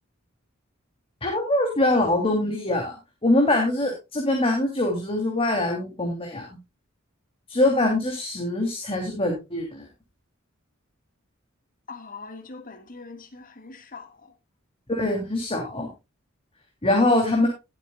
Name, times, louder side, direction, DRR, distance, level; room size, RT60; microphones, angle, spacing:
voice 1, 1.2-2.9 3.2-6.6 7.5-9.9 14.9-15.9 16.8-17.5, left 1 dB, 30° left, 2.9 m, -23 dB
voice 2, 11.9-14.3, left 4 dB, 45° left, 1.7 m, -42 dB
20.0 x 8.1 x 2.3 m
head